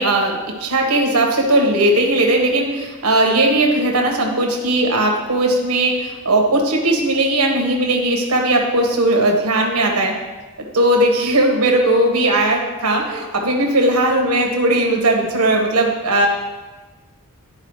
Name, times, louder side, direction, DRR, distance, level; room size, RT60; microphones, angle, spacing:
voice 1, 0.0-10.2 10.7-16.3, right 1 dB, 90° right, 1 dB, 1.4 m, -17 dB
12.0 x 4.8 x 3.2 m, 1.2 s
head